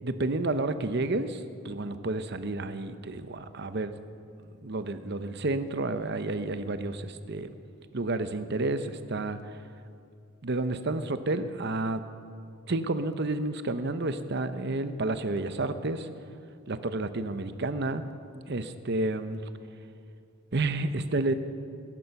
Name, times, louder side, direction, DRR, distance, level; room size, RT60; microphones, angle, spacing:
voice 1, 0.0-3.9 4.6-7.5 7.9-9.4 10.4-12.0 12.7-16.1 16.7-18.1 18.5-19.4 20.5-21.3, right 2 dB, 50° right, 10 dB, 0.8 m, -30 dB
20.5 x 11.0 x 5.9 m, 2.4 s
head